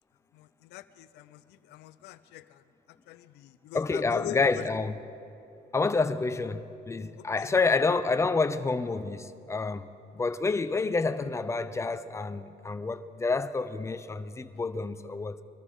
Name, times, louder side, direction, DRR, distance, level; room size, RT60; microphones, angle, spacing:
voice 1, 0.7-1.4 1.7-2.4 3.1-4.4, left 15 dB, 90° left, 13 dB, 0.6 m, -42 dB
voice 2, 3.7-5.0 5.7-9.9 10.1-15.4, left 4 dB, 15° left, 11 dB, 0.6 m, -28 dB
23.0 x 13.5 x 3.6 m, 2.7 s
cardioid pair, 110°, 17 cm